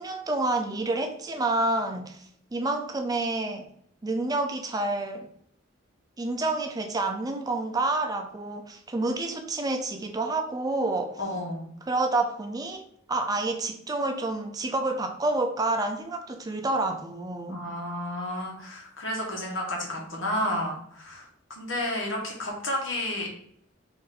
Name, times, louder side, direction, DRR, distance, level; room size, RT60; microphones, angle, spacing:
voice 1, 0.0-3.7 4.0-5.3 6.2-11.2 11.9-17.6, right 2 dB, 20° right, 4 dB, 0.4 m, -28 dB
voice 2, 11.2-11.7 17.5-23.3, left 1 dB, 75° left, -1 dB, 1.3 m, -31 dB
4.0 x 2.6 x 4.0 m, 0.68 s
head